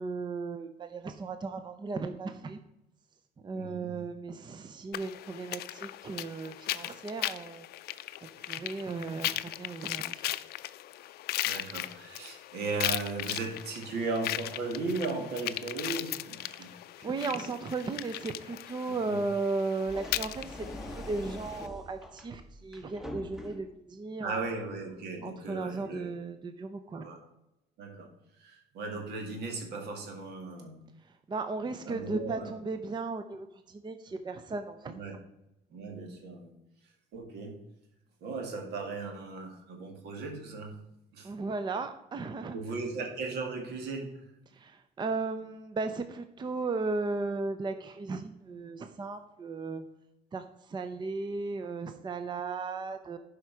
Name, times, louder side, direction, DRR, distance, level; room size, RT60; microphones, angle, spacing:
voice 1, 0.0-2.6 3.4-7.7 8.2-10.2 17.0-24.6 25.2-27.1 31.0-35.0 41.2-42.6 44.5-49.8 50.3-53.2, right 3 dB, 25° right, 9 dB, 0.6 m, -36 dB
voice 2, 3.5-3.9 11.4-16.7 17.0-17.3 19.1-19.2 24.2-26.1 26.9-27.2 27.8-28.1 28.4-30.8 31.9-32.5 34.9-35.2 35.7-36.5 37.1-37.6 38.2-40.7 41.1-41.3 42.5-44.1, right 3 dB, 75° right, 3 dB, 2.1 m, -37 dB
sound 1, 4.9-21.7, left 14 dB, 70° left, 0.4 m, -38 dB
sound 2, 19.8-23.8, left 1 dB, ahead, 1.1 m, -43 dB
11.5 x 5.1 x 4.7 m, 0.89 s
cardioid pair, 110°, 17 cm